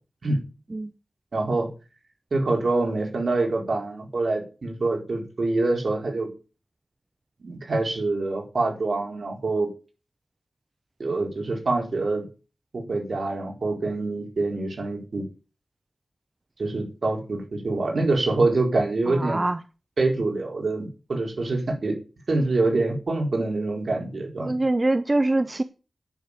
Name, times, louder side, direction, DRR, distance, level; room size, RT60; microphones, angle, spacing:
voice 1, 1.3-1.7 2.3-6.3 7.4-9.7 11.0-12.2 12.7-15.2 16.6-19.5 20.0-22.0 22.3-24.6, right 2 dB, 70° right, 4.4 m, -25 dB
voice 2, 19.1-19.6 24.4-25.6, right 2 dB, 30° right, 0.6 m, -23 dB
10.5 x 6.6 x 8.4 m
wide cardioid pair, 85°, 0 cm